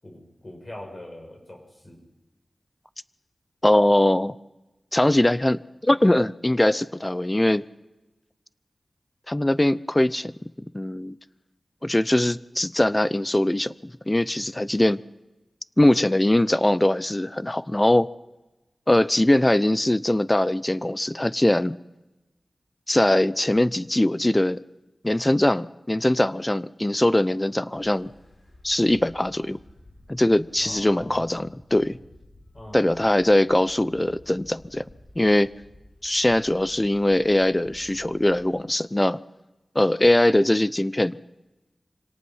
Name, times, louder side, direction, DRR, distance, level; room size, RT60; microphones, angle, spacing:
voice 1, 0.0-2.0 30.6-31.2 32.5-32.9, left 1 dB, 40° left, 2 dB, 7.1 m, -42 dB
voice 2, 3.6-4.4 4.9-7.7 9.3-11.2 11.8-15.0 15.8-18.1 18.9-21.8 22.9-24.6 25.0-28.1 28.6-29.6 30.1-32.0 32.7-34.9 35.2-35.5 36.0-39.2 39.7-41.2, left 1 dB, 20° left, 17 dB, 0.7 m, -21 dB
sound 1, 27.7-38.4, left 1 dB, 70° left, 6.3 m, -52 dB
25.0 x 18.0 x 5.7 m, 1.1 s
wide cardioid pair, 50°, 0 cm